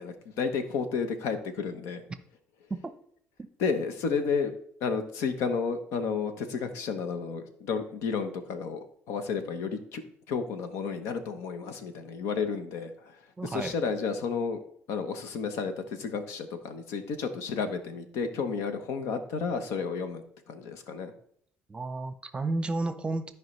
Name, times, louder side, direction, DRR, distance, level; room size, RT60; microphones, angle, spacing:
voice 1, 0.0-2.0 3.6-4.5 4.8-10.0 10.3-14.6 14.9-21.1, left 5 dB, 85° left, 9 dB, 1.0 m, -32 dB
voice 2, 13.4-13.8 21.7-23.3, right 2 dB, 20° right, 10 dB, 0.7 m, -32 dB
13.5 x 4.8 x 3.2 m, 0.65 s
cardioid pair, 100°, 5 cm